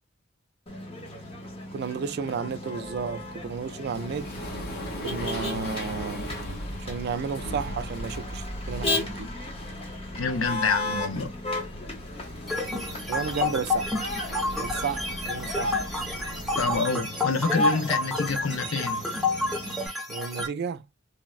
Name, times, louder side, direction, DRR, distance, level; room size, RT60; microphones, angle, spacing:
Motor vehicle (road), 0.7-19.9, left 2 dB, 30° left, 0.8 m, -35 dB
voice 1, 1.7-4.3 5.0-6.3 6.8-9.3 13.1-13.9 14.6-15.8 20.1-20.9, right 6 dB, 55° right, 0.3 m, -32 dB
sound 1, 2.7-16.8, equal, 55° left, 1.1 m, -39 dB
voice 2, 10.1-11.3 16.6-19.0, left 4 dB, 75° left, 0.6 m, -27 dB
sound 2, 12.5-20.5, left 2 dB, ahead, 0.7 m, -30 dB
3.3 x 2.1 x 2.3 m
head